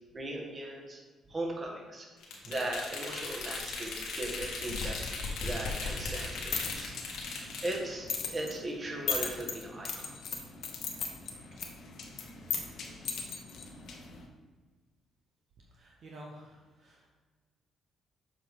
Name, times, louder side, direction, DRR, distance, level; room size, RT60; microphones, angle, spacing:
voice 1, 0.1-1.0 1.3-2.1 2.4-5.0 5.4-7.0 7.6-10.1, right 1 dB, 30° right, 0 dB, 1.6 m, -38 dB
sound 1, 2.2-7.8, left 3 dB, 90° left, 1.5 m, -37 dB
sound 2, 6.2-14.3, left 5 dB, 70° left, 1.0 m, -39 dB
voice 2, 15.7-17.1, right 1 dB, 60° right, -1 dB, 1.0 m, -50 dB
7.5 x 4.8 x 3.7 m, 1.4 s
cardioid pair, 90°, 0 cm